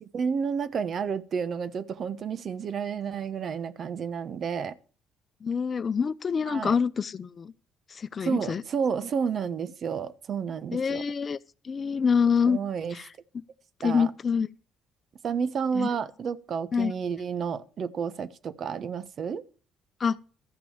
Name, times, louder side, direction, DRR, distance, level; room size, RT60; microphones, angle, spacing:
voice 1, 0.0-4.8 6.5-6.7 8.2-11.0 12.5-12.9 13.8-14.1 15.2-19.4, right 6 dB, 55° right, 1.0 m, -31 dB
voice 2, 5.4-7.5 7.9-8.6 10.7-11.4 11.6-12.6 12.9-13.1 13.8-14.5 15.7-15.9 16.7-16.9 20.0-20.2, left 6 dB, 45° left, 0.7 m, -26 dB
13.5 x 6.0 x 7.3 m
supercardioid pair, 65°, 0 cm